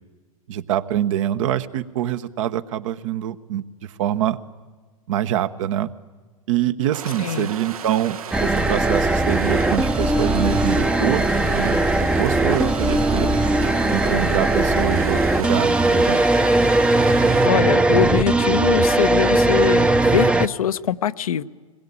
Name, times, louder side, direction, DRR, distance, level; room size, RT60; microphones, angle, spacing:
voice 1, 0.5-4.4 5.1-5.9 6.5-11.8 12.2-13.3 13.9-16.2, right 11 dB, 60° right, 10 dB, 1.2 m, -25 dB
sound 1, 6.9-17.5, right 8 dB, 80° right, 1.3 m, -34 dB
sound 2, 8.3-20.5, right 2 dB, 5° right, 0.7 m, -19 dB
voice 2, 17.4-21.4, left 10 dB, 80° left, 12 dB, 0.8 m, -23 dB
25.0 x 21.0 x 8.6 m, 1.4 s
hypercardioid pair, 105°, 18 cm